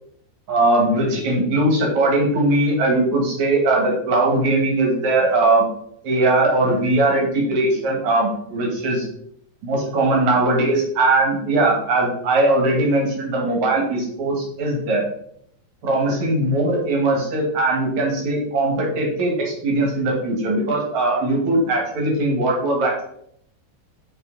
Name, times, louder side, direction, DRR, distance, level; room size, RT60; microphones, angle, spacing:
voice 1, 0.5-5.7 6.0-9.1 9.6-15.0 15.8-23.0, right 2 dB, 50° right, -1 dB, 2.7 m, -20 dB
8.6 x 5.5 x 4.1 m, 0.69 s
omnidirectional pair, 5.3 m